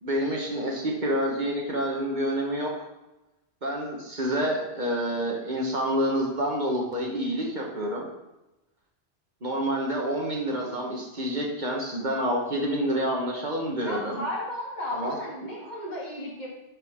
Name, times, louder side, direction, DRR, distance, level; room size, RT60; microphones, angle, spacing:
voice 1, 0.0-2.7 3.6-8.1 9.4-14.2 14.9-15.2, equal, 45° right, -1 dB, 1.5 m, -28 dB
voice 2, 13.8-16.5, left 1 dB, 45° left, -5 dB, 2.4 m, -34 dB
11.5 x 5.4 x 3.6 m, 0.99 s
omnidirectional pair, 1.1 m